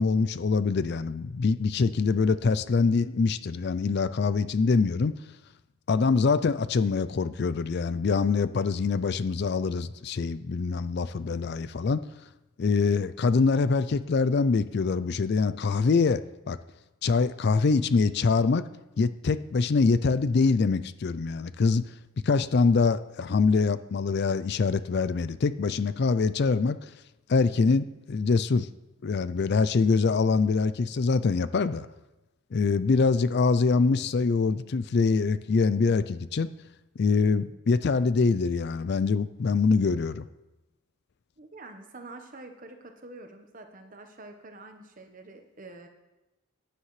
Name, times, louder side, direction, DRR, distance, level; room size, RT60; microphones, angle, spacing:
voice 1, 0.0-5.1 5.9-12.0 12.6-16.6 17.0-18.7 19.0-21.8 22.2-26.8 27.3-28.7 29.0-31.9 32.5-36.5 37.0-40.2, left 4 dB, 50° left, 14 dB, 0.4 m, -24 dB
voice 2, 41.4-45.9, right 2 dB, 40° right, 5 dB, 1.1 m, -46 dB
15.0 x 10.0 x 3.2 m, 1.0 s
head